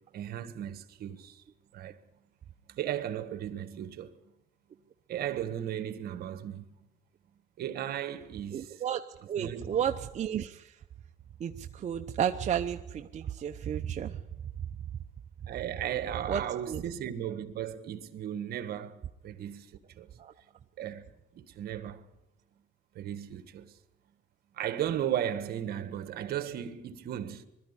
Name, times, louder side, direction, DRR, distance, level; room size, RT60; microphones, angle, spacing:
voice 1, 0.1-1.4 1.7-2.0 2.7-4.1 5.1-6.6 7.6-8.8 9.4-9.8 15.5-20.1 20.8-22.0 22.9-23.8 24.5-27.5, right 10 dB, 65° right, 1.6 m, -36 dB
voice 2, 8.5-10.7 11.4-14.2 16.3-16.8 20.2-20.3, right 9 dB, 45° right, 0.8 m, -32 dB
21.5 x 13.0 x 9.9 m
cardioid pair, 110°, 17 cm